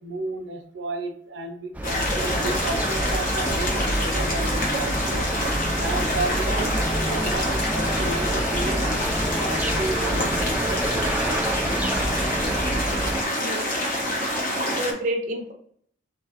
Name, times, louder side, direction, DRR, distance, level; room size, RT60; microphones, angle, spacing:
voice 1, 0.0-5.3 5.8-11.4, right 2 dB, 80° right, 4 dB, 0.8 m, -33 dB
sound 1, 1.7-13.2, right 1 dB, 10° right, 0.3 m, -28 dB
sound 2, 1.8-14.9, left 1 dB, 45° left, 1.1 m, -27 dB
voice 2, 13.4-13.7 14.7-15.5, right 1 dB, 40° right, 1 dB, 0.7 m, -29 dB
3.4 x 3.4 x 3.9 m, 0.63 s
head